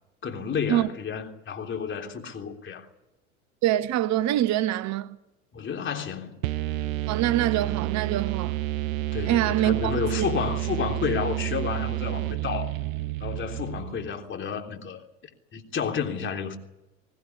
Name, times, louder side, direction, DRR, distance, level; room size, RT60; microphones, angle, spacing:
voice 1, 0.2-2.9 5.5-6.4 9.1-12.7 13.2-15.0 15.5-16.6, left 6 dB, 25° left, 3.4 m, -31 dB
voice 2, 3.6-5.2 7.1-8.6 9.2-10.3, right 13 dB, 40° right, 1.1 m, -25 dB
sound 1, 6.4-14.1, right 17 dB, 70° right, 0.8 m, -30 dB
22.0 x 17.5 x 9.7 m
hypercardioid pair, 85°, 42 cm